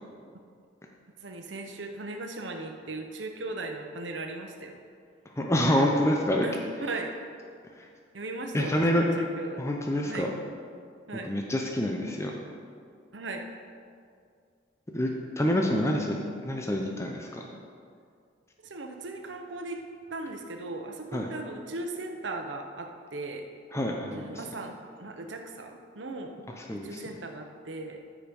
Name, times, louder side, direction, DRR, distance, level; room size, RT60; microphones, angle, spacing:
voice 1, 1.2-4.8 6.4-7.1 8.1-9.6 10.0-10.3 11.1-11.3 13.1-13.4 18.6-19.8 20.1-23.4 24.1-26.4 26.8-28.0, right 2 dB, 75° right, 4 dB, 0.9 m, -38 dB
voice 2, 5.4-6.4 7.8-7.9 8.5-9.0 9.6-10.3 11.2-12.3 14.9-17.4 21.1-21.3 23.7-24.3 26.7-27.0, left 1 dB, 15° left, 0 dB, 0.7 m, -27 dB
13.5 x 5.0 x 5.3 m, 2.2 s
head